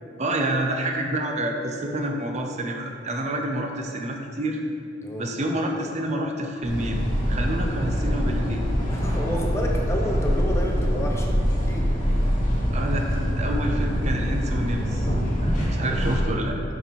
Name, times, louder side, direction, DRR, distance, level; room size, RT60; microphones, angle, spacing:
voice 1, 0.2-4.6 5.2-7.0 7.3-8.6 12.7-16.6, right 1 dB, 35° right, 2 dB, 0.6 m, -28 dB
sound 1, 6.6-16.2, equal, 45° left, 1.4 m, -24 dB
voice 2, 8.9-11.9, equal, 15° left, 0 dB, 0.6 m, -30 dB
10.5 x 4.3 x 3.0 m, 2.4 s
head